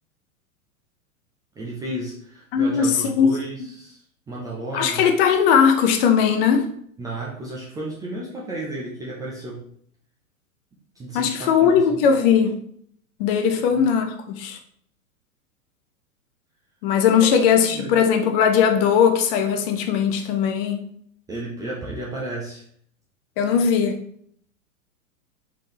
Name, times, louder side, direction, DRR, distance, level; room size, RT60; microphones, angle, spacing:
voice 1, 1.6-4.0 4.3-5.1 7.0-9.6 11.0-12.0 13.5-13.9 17.2-17.3 17.5-18.0 21.3-22.6, right 1 dB, 10° right, -5 dB, 0.4 m, -33 dB
voice 2, 2.5-3.3 4.7-6.7 11.1-12.6 13.2-14.6 16.8-20.8 23.4-24.0, left 7 dB, 40° left, 5 dB, 0.7 m, -19 dB
3.8 x 3.7 x 3.0 m, 0.63 s
hypercardioid pair, 110°, 42 cm